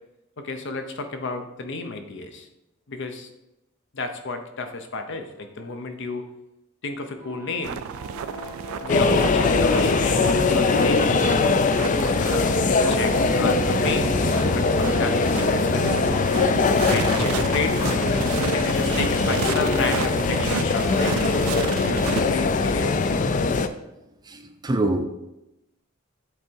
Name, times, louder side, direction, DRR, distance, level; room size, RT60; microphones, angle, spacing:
voice 1, 0.4-2.5 2.9-3.3 3.9-6.3 6.8-7.8 8.8-11.1 12.2-16.0 16.9-18.0 18.5-23.5, left 3 dB, 60° left, 6 dB, 0.7 m, -32 dB
sound 1, 7.0-18.2, right 6 dB, 80° left, 1.4 m, -38 dB
sound 2, 7.6-22.2, right 8 dB, 75° right, 0.3 m, -33 dB
sound 3, 8.9-23.7, left 4 dB, 40° left, 0.3 m, -21 dB
voice 2, 24.3-25.1, right 1 dB, 20° right, 7 dB, 0.5 m, -25 dB
8.0 x 3.6 x 4.5 m, 0.93 s
head